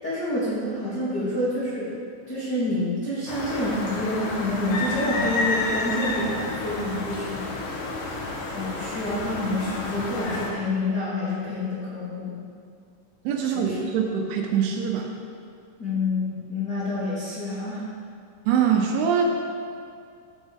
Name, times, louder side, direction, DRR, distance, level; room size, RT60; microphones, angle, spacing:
voice 1, 0.0-1.9 2.3-7.8 8.5-12.4 13.5-13.8 15.8-17.8, left 1 dB, 30° left, -13 dB, 2.2 m, -28 dB
sound 1, 3.3-10.5, left 2 dB, 70° left, 2.2 m, -30 dB
voice 2, 13.2-15.1 18.5-19.2, right 7 dB, 80° right, 1 dB, 3.0 m, -23 dB
16.0 x 6.1 x 3.7 m, 2.3 s
omnidirectional pair, 5.8 m